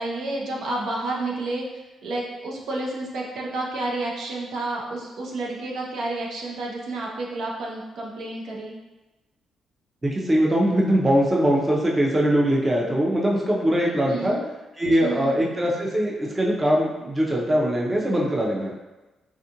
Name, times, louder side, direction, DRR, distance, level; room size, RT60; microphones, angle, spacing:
voice 1, 0.0-1.6 2.0-8.7 14.0-14.4 15.0-15.3, right 2 dB, 75° right, -2 dB, 0.6 m, -30 dB
voice 2, 10.0-14.4 14.8-18.7, equal, 20° right, -3 dB, 0.5 m, -21 dB
3.5 x 2.4 x 2.8 m, 1.1 s
cardioid pair, 110°, 0 cm